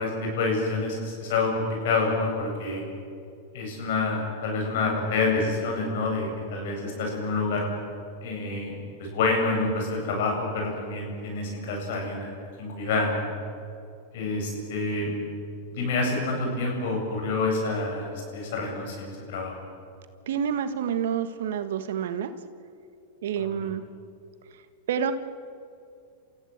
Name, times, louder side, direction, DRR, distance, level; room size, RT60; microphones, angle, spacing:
voice 1, 0.0-2.8 3.5-7.7 8.2-8.7 9.0-13.3 14.1-15.1 15.7-19.5 23.4-23.6, left 3 dB, 65° left, 1 dB, 7.9 m, -28 dB
voice 2, 20.3-22.3 23.2-23.8 24.9-25.1, right 8 dB, 70° right, 10 dB, 1.5 m, -28 dB
29.5 x 15.5 x 8.0 m, 2.5 s
hypercardioid pair, 105°, 0 cm